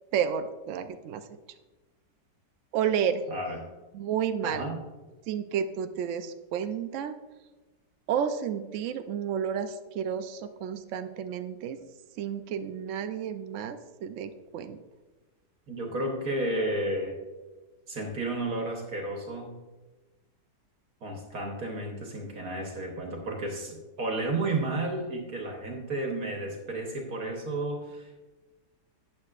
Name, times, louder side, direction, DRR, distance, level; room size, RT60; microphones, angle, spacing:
voice 1, 0.1-1.2 2.7-3.3 3.9-4.7 5.3-7.1 8.1-11.8 12.2-14.8, right 8 dB, 85° right, 9 dB, 0.6 m, -31 dB
voice 2, 3.3-3.7 4.4-4.8 15.7-17.2 17.9-19.5 21.0-28.2, right 2 dB, 60° right, 1 dB, 1.5 m, -32 dB
11.5 x 8.5 x 2.4 m, 1.2 s
omnidirectional pair, 1.8 m